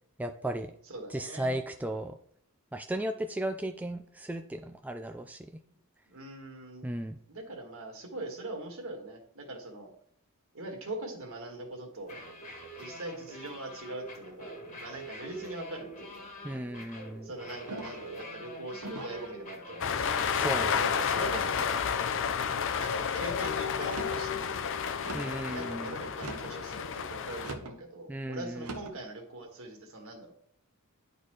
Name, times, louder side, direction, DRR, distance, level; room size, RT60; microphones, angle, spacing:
voice 1, 0.2-0.7 1.1-2.2 2.7-5.4 6.8-7.2 16.4-17.3 20.3-20.7 25.1-25.8 28.1-28.7, right 1 dB, 5° right, 6 dB, 0.3 m, -35 dB
voice 2, 0.8-1.6 5.7-5.8 6.1-6.9 7.3-9.9 10.5-12.2 12.8-16.6 17.2-20.3 20.7-21.8 22.8-24.8 25.5-30.3, right 2 dB, 65° right, 2 dB, 1.8 m, -42 dB
sound 1, 12.0-22.0, equal, 35° left, 1.6 m, -45 dB
sound 2, 17.7-18.1 18.8-19.3 19.9-20.4 21.1-21.6 22.2-22.6 23.8-24.3 25.0-25.4 26.1-26.6 27.4-27.8 28.6-29.0, right 2 dB, 85° right, 1.1 m, -42 dB
sound 3, 19.8-27.5, left 7 dB, 60° left, 0.5 m, -31 dB
11.0 x 4.1 x 3.2 m, 0.63 s
head